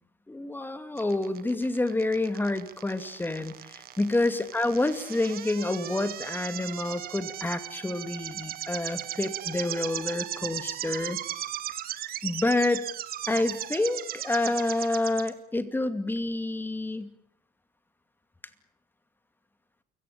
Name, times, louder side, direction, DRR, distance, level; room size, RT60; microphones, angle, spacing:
voice 1, 0.3-11.2 12.2-12.8 13.3-17.1, left 2 dB, 10° left, 10 dB, 2.4 m, -28 dB
sound 1, 1.0-15.3, right 12 dB, 65° right, 1.8 m, -37 dB
29.5 x 17.5 x 8.5 m, 0.67 s
cardioid pair, 110°, 17 cm